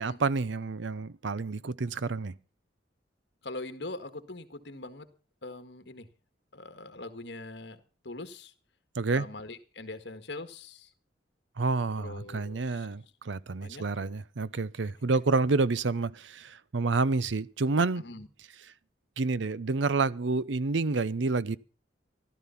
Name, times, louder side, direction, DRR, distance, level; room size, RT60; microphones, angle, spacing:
voice 1, 0.0-2.3 9.0-9.3 11.6-18.0 19.2-21.6, right 3 dB, 80° right, 0.7 m, -29 dB
voice 2, 3.4-5.1 5.4-6.1 6.5-8.5 9.1-10.9 12.0-12.9 13.6-13.9 18.0-18.3, left 2 dB, 65° left, 1.7 m, -42 dB
15.0 x 12.5 x 5.8 m
head